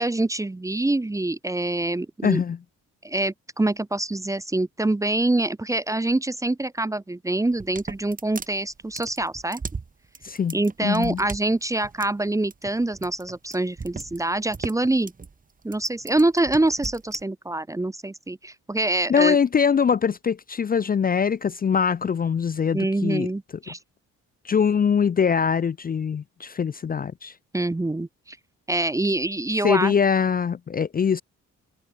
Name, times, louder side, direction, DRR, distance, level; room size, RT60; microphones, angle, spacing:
voice 1, 0.0-2.4 3.0-9.6 10.5-15.1 15.6-19.4 22.7-23.8 27.5-28.4 28.7-29.9, right 2 dB, 10° right, 0.7 m, -25 dB
voice 2, 2.2-2.6 10.2-11.2 19.1-23.3 24.4-27.3 29.6-31.2, left 6 dB, 30° left, 0.5 m, -22 dB
sound 1, 7.5-17.2, right 5 dB, 30° right, 1.8 m, -38 dB
cardioid pair, 90°, 30 cm